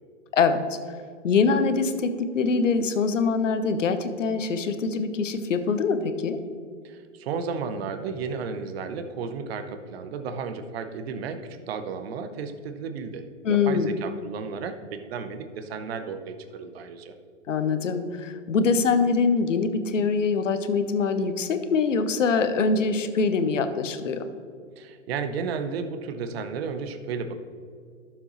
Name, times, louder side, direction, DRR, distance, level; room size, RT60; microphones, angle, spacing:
voice 1, 0.3-0.8 1.2-6.4 13.4-13.9 17.5-24.3, left 4 dB, 75° left, 9 dB, 1.0 m, -24 dB
voice 2, 6.8-17.1 24.8-27.3, right 5 dB, 50° right, 8 dB, 0.9 m, -33 dB
12.5 x 7.1 x 3.1 m, 2.2 s
hypercardioid pair, 120°, 38 cm